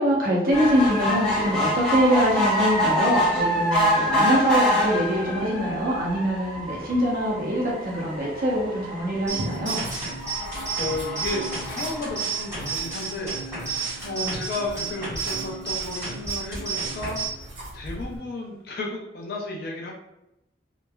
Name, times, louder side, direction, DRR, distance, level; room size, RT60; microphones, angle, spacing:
voice 1, 0.0-9.8 14.2-14.4, equal, 50° right, -4 dB, 0.6 m, -24 dB
sound 1, 0.5-13.1 13.7-13.8 14.1-14.2 14.4-14.5, equal, 5° left, 0.7 m, -26 dB
Writing, 9.2-18.2, right 1 dB, 80° right, 0.9 m, -42 dB
sound 2, 9.3-17.3, right 5 dB, 15° right, 1.3 m, -32 dB
voice 2, 10.8-13.3 13.6-17.2 17.7-19.9, left 2 dB, 55° left, -1 dB, 0.5 m, -33 dB
3.1 x 2.1 x 2.2 m, 0.90 s
head